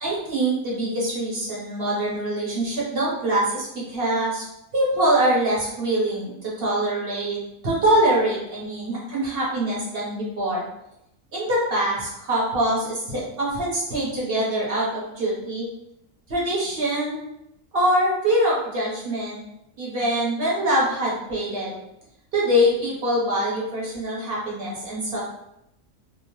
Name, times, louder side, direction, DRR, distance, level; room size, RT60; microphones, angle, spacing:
voice 1, 0.0-4.4 4.7-10.6 11.3-15.7 16.3-17.2 17.7-19.4 19.8-21.8 22.3-25.2, right 1 dB, 50° right, -5 dB, 0.9 m, -24 dB
2.8 x 2.1 x 2.9 m, 0.82 s
omnidirectional pair, 1.4 m